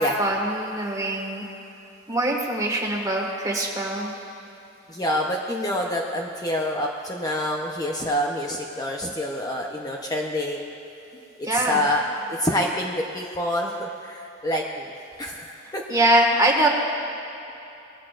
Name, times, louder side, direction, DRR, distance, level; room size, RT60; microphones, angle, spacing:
voice 1, 0.0-1.4 2.1-4.1 11.4-11.8 15.9-16.7, right 1 dB, 20° right, -1 dB, 1.7 m, -23 dB
voice 2, 4.9-10.7 11.5-12.0 12.3-14.9 15.2-15.8, left 1 dB, 20° left, 0 dB, 0.8 m, -27 dB
20.5 x 15.0 x 2.5 m, 3.0 s
head